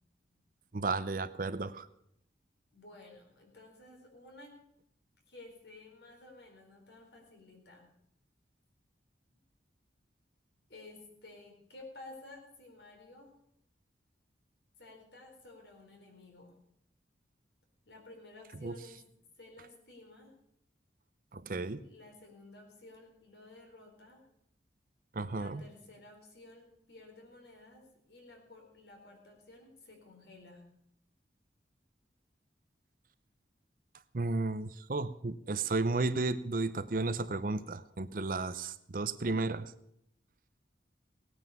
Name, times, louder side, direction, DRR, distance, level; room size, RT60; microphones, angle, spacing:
voice 1, 0.7-1.9 18.6-18.7 21.3-21.8 25.1-25.6 34.1-39.7, right 3 dB, 50° right, 12 dB, 0.6 m, -33 dB
voice 2, 2.7-4.6 5.3-7.9 10.7-13.3 14.8-16.6 17.9-19.0 19.4-20.3 21.8-24.3 25.3-30.7, left 2 dB, 70° left, 2 dB, 4.2 m, -54 dB
17.5 x 9.4 x 6.9 m, 0.74 s
head